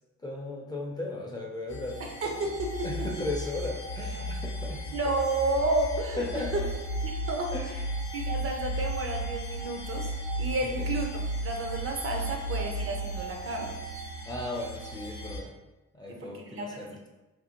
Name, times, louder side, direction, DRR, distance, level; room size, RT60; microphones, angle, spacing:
voice 1, 0.2-2.0 2.3-2.4 2.8-4.9 6.2-6.7 7.5-7.8 10.6-10.9 14.3-15.5 15.9-17.1, left 2 dB, 15° left, -1 dB, 0.4 m, -36 dB
sound 1, 1.7-15.4, right 1 dB, 65° left, 0.7 m, -35 dB
voice 2, 2.0-3.1 4.9-6.2 6.5-6.6 7.0-7.5 8.1-10.1 10.4-11.1 11.4-13.8 16.1-16.9, right 2 dB, 45° right, 2 dB, 0.5 m, -31 dB
2.7 x 2.6 x 2.8 m, 1.1 s
cardioid pair, 90°, 30 cm